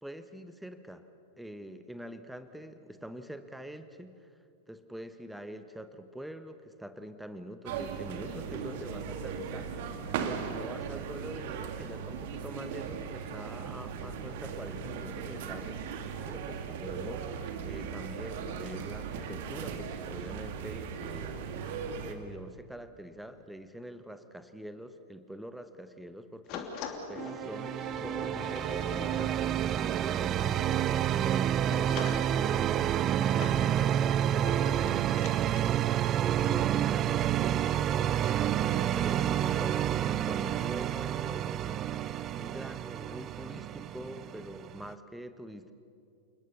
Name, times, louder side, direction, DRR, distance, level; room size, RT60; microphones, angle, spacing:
voice 1, 0.0-1.0 1.4-4.3 4.7-9.7 10.2-15.7 16.3-17.3 17.6-21.5 22.0-26.7 27.1-30.6 31.0-35.3 35.8-41.8 42.3-45.7, equal, ahead, 10 dB, 1.2 m, -45 dB
sound 1, 7.7-22.1, right 6 dB, 50° right, 2.0 m, -38 dB
sound 2, 26.5-35.7, left 6 dB, 40° left, 2.9 m, -44 dB
sound 3, 27.2-44.9, right 10 dB, 30° right, 0.5 m, -29 dB
29.0 x 20.5 x 7.1 m, 2.5 s
figure-of-eight pair, 90°, 0 cm